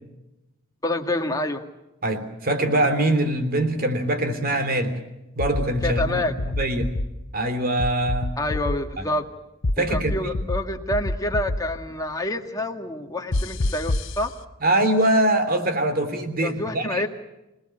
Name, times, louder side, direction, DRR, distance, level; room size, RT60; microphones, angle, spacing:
voice 1, 0.8-1.6 5.8-6.3 8.4-9.3 9.8-14.3 16.4-17.1, left 1 dB, 15° left, 3 dB, 1.9 m, -27 dB
voice 2, 2.0-5.0 5.3-6.9 7.3-8.3 9.0-9.1 9.8-10.3 14.6-17.0, right 1 dB, 45° right, 8 dB, 3.2 m, -23 dB
sound 1, 5.4-6.1 6.4-7.0 7.8-8.7 9.6-10.6 10.9-11.6 13.3-14.1, left 2 dB, 60° left, 1.0 m, -25 dB
27.0 x 19.5 x 7.8 m, 0.98 s
head